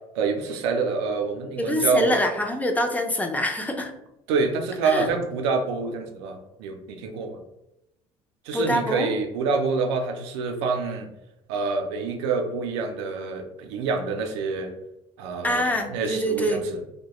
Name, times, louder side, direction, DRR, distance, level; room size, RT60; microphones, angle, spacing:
voice 1, 0.2-2.1 4.3-7.4 8.5-11.1 11.5-14.7 15.2-15.6 15.9-16.8, right 4 dB, 85° right, 4 dB, 0.4 m, -26 dB
voice 2, 1.6-3.9 4.8-5.1 8.5-9.1 15.4-16.6, equal, 10° left, 4 dB, 0.4 m, -25 dB
2.2 x 2.1 x 2.8 m, 0.89 s
supercardioid pair, 80°, 14 cm